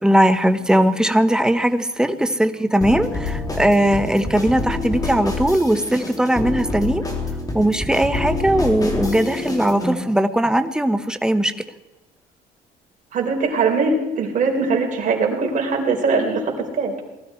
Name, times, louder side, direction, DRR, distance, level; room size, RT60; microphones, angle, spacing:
voice 1, 0.0-7.0 7.5-11.5, right 1 dB, 5° right, 10 dB, 1.0 m, -19 dB
sound 1, 2.8-9.9, left 3 dB, 20° left, 3.1 m, -27 dB
voice 2, 13.1-16.9, right 4 dB, 50° right, 1 dB, 4.3 m, -21 dB
20.0 x 13.0 x 4.5 m, 1.1 s
cardioid pair, 110°, 17 cm